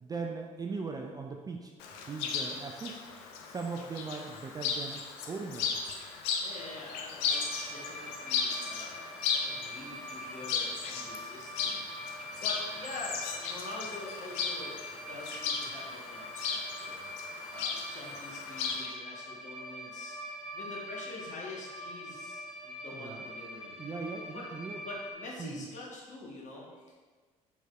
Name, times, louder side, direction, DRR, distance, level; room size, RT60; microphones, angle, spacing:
voice 1, 0.0-1.7 2.1-3.0 3.5-5.6 22.9-23.2 23.8-24.8 25.4-25.5, right 4 dB, 20° right, 2 dB, 0.4 m, -39 dB
Chirp tweet, 1.8-18.9, left 5 dB, 65° left, 0.5 m, -36 dB
voice 2, 6.4-17.1 17.5-20.2 20.5-23.9 24.3-24.5 24.8-26.9, left 2 dB, 40° left, -3 dB, 1.3 m, -45 dB
sound 1, 7.3-25.1, equal, 5° right, 0.8 m, -44 dB
4.5 x 4.1 x 2.4 m, 1.4 s
figure-of-eight pair, 55°, 18 cm